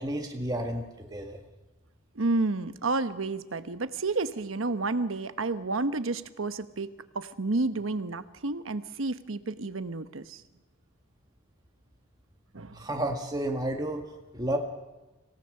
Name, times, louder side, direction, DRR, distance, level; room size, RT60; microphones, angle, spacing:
voice 1, 0.0-1.4 12.7-14.0 14.3-14.6, right 1 dB, 20° right, 2 dB, 1.8 m, -31 dB
voice 2, 2.1-10.4 12.5-12.8, right 3 dB, 90° right, 11 dB, 1.1 m, -30 dB
26.0 x 17.5 x 6.6 m, 1.1 s
head